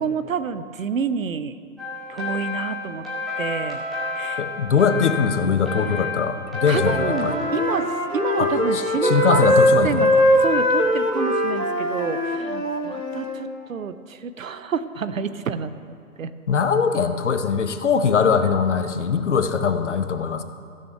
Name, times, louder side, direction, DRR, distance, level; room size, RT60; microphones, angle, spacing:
voice 1, 0.0-1.5 2.1-3.1 3.4-3.8 4.2-4.4 6.0-6.1 6.7-7.9 8.1-9.5 9.8-10.1 10.4-16.3, right 6 dB, 60° right, 13 dB, 0.6 m, -28 dB
sound 1, 1.8-9.6, left 3 dB, ahead, 0.4 m, -31 dB
voice 2, 4.4-7.4 8.4-10.2 16.5-20.4, left 6 dB, 50° left, 9 dB, 0.8 m, -21 dB
Wind instrument woodwind instrument, 6.6-13.4, left 1 dB, 80° left, 2.8 m, -21 dB
15.0 x 6.5 x 5.6 m, 2.3 s
figure-of-eight pair, 130°, 46 cm